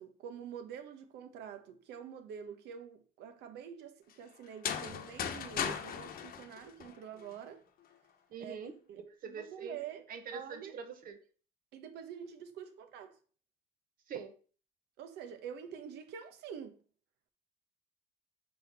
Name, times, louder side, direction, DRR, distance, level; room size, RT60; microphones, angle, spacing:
voice 1, 0.0-7.6 8.4-8.6 8.9-10.1 10.3-10.8 11.7-13.2 15.0-16.8, right 8 dB, 80° right, 1.1 m, -46 dB
sound 1, 4.5-7.3, left 8 dB, 60° left, 1.0 m, -38 dB
voice 2, 8.3-9.8 10.1-11.2 14.1-14.4, right 6 dB, 55° right, 1.3 m, -44 dB
5.0 x 4.8 x 5.3 m
cardioid pair, 110°, 17 cm